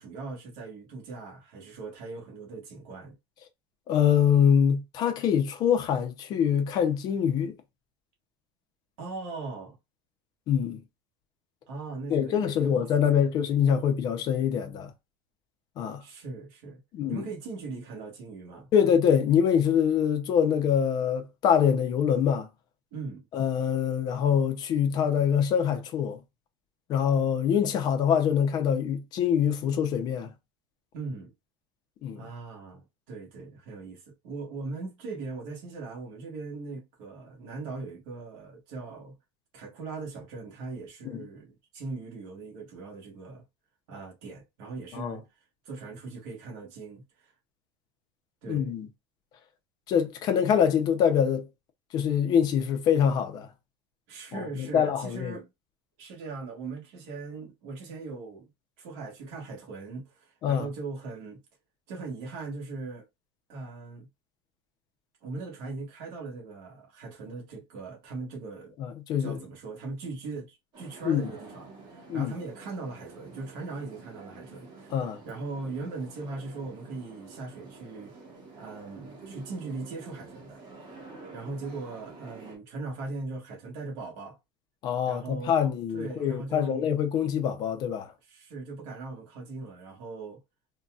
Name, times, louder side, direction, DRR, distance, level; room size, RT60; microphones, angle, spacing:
voice 1, 0.0-3.1 9.0-9.8 11.7-13.2 16.0-16.8 17.1-18.7 22.9-23.3 30.9-31.3 32.1-39.1 39.5-43.4 43.9-45.2 45.6-47.0 48.4-48.7 54.1-55.5 56.0-58.5 58.8-61.4 61.9-63.0 63.5-64.1 65.2-68.7 69.2-78.1 78.6-80.6 81.3-84.4 85.1-85.6 85.9-86.9 88.2-90.4, right 3 dB, 60° right, 1.3 m, -39 dB
voice 2, 3.9-7.5 10.5-10.8 12.1-14.9 15.8-16.0 16.9-17.2 18.7-22.5 23.3-26.2 26.9-30.3 32.0-32.3 44.9-45.2 48.5-48.9 49.9-51.5 51.9-53.5 54.3-55.3 60.4-60.7 68.8-69.4 71.0-71.2 72.1-72.3 74.9-75.2 84.8-88.1, left 8 dB, 30° left, 0.6 m, -24 dB
sound 1, 70.7-82.6, right 3 dB, 35° right, 1.2 m, -49 dB
3.9 x 2.2 x 2.3 m
cardioid pair, 175°, 13 cm